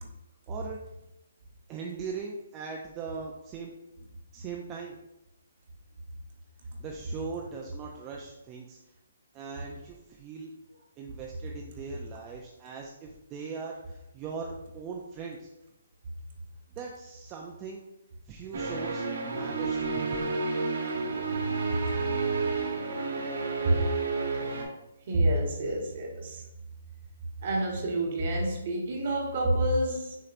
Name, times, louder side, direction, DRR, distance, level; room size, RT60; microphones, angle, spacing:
voice 1, 0.5-0.8 1.7-3.7 4.3-5.0 6.8-8.8 9.3-10.5 11.0-15.5 16.7-17.8 18.2-20.3, right 5 dB, 15° right, 0 dB, 0.3 m, -40 dB
sound 1, 18.5-24.6, right 4 dB, 65° right, 1.1 m, -30 dB
voice 2, 25.1-26.4 27.4-30.2, right 1 dB, 40° right, 0 dB, 1.0 m, -28 dB
6.4 x 2.9 x 2.5 m, 0.90 s
hypercardioid pair, 170°, 0 cm